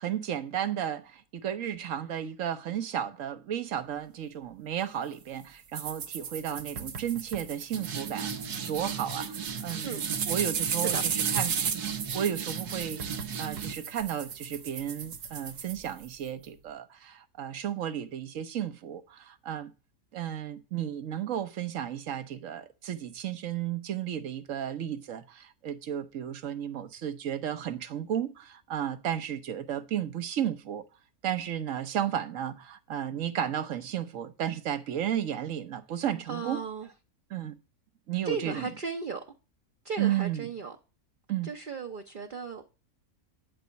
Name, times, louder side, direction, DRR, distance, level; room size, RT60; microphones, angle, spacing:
voice 1, 0.0-8.3 8.7-11.6 12.1-19.7 20.1-30.8 31.2-36.6 37.3-37.6 38.1-38.7 40.0-40.5 41.3-41.5, right 10 dB, 60° right, 1.3 m, -33 dB
sound 1, 5.7-16.3, right 7 dB, 85° right, 1.7 m, -33 dB
voice 2, 10.7-11.0 36.3-36.9 38.2-39.2 39.8-40.8 41.4-42.6, right 5 dB, 40° right, 0.9 m, -35 dB
11.5 x 4.2 x 8.1 m
omnidirectional pair, 1.6 m